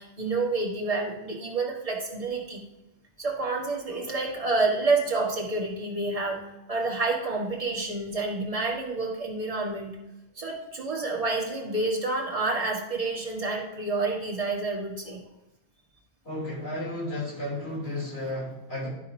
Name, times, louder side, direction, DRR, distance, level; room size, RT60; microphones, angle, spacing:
voice 1, 0.0-2.6 3.2-6.4 6.7-9.9 10.4-15.2, right 3 dB, 30° right, -2 dB, 1.8 m, -28 dB
voice 2, 16.2-18.9, left 1 dB, 65° left, -6 dB, 3.3 m, -33 dB
12.0 x 4.1 x 5.0 m, 0.95 s
omnidirectional pair, 1.1 m